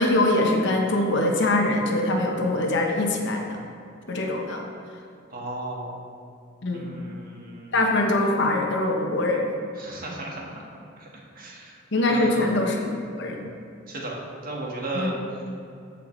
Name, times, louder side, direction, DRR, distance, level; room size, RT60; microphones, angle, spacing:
voice 1, 0.0-3.6 4.1-4.6 6.6-6.9 7.7-9.5 11.9-12.9 13.2-13.5 14.9-15.1, left 2 dB, 65° left, 1 dB, 1.2 m, -23 dB
voice 2, 5.3-5.9 6.7-8.0 9.8-11.8 12.1-12.5 13.9-14.1 14.4-15.2, right 2 dB, 45° right, -2 dB, 1.6 m, -35 dB
14.0 x 5.8 x 3.2 m, 2.6 s
head